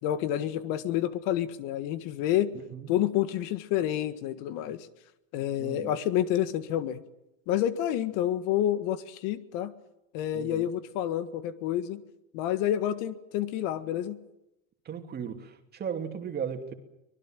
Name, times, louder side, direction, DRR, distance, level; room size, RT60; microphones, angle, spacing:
voice 1, 0.0-2.5 2.9-4.9 5.3-7.0 7.5-9.7 10.1-12.0 12.3-14.2, left 11 dB, 55° left, 1.8 m, -29 dB
voice 2, 2.5-2.9 5.6-6.0 10.3-10.7 14.8-16.7, right 7 dB, 25° right, 2.8 m, -36 dB
25.0 x 20.5 x 7.6 m
supercardioid pair, 150°, 39 cm